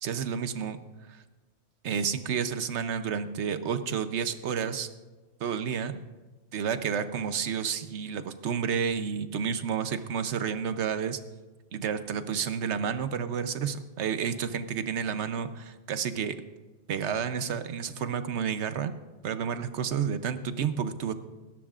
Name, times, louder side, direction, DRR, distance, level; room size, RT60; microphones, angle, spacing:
voice 1, 0.0-0.8 1.1-1.2 1.8-4.9 5.4-6.0 6.5-11.2 11.7-16.4 16.9-18.9 19.2-21.1, right 7 dB, 80° right, 10 dB, 1.1 m, -30 dB
24.0 x 12.0 x 2.5 m, 1.2 s
omnidirectional pair, 1.2 m